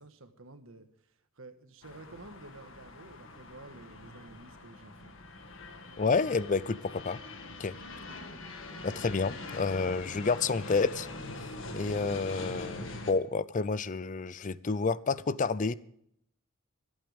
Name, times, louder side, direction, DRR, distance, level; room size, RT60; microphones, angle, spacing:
voice 1, 0.0-5.1, right 2 dB, 70° right, 1.5 m, -51 dB
sound 1, 1.8-13.1, left 2 dB, 60° left, 1.9 m, -43 dB
voice 2, 6.0-7.2 7.6-7.8 8.8-11.1 11.4-11.5 11.7-15.7, left 4 dB, 35° left, 0.5 m, -29 dB
25.5 x 8.8 x 3.5 m
head